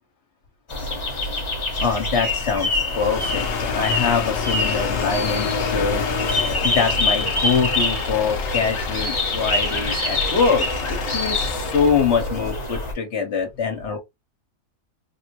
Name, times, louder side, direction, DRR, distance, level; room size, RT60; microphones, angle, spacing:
sound 1, 0.7-12.9, left 2 dB, 30° left, 0.6 m, -25 dB
voice 1, 1.8-2.7 3.0-6.1 6.6-14.0, left 5 dB, 50° left, 1.2 m, -24 dB
sound 2, 2.8-12.1, left 6 dB, 75° left, 0.5 m, -29 dB
3.7 x 2.1 x 2.8 m
omnidirectional pair, 1.7 m